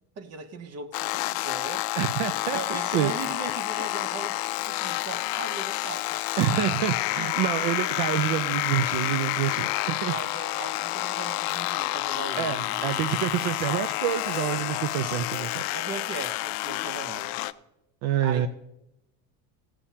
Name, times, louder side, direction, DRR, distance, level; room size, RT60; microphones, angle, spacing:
voice 1, 0.2-1.9 2.5-6.2 10.0-13.4 15.7-17.4 18.2-18.5, right 4 dB, 35° right, 0.9 m, -39 dB
sound 1, 0.9-17.5, left 19 dB, 55° left, 0.5 m, -29 dB
voice 2, 2.0-3.1 6.4-10.6 12.4-15.6 18.0-18.5, right 11 dB, 55° right, 0.5 m, -28 dB
15.5 x 8.7 x 2.8 m
cardioid pair, 135°, 46 cm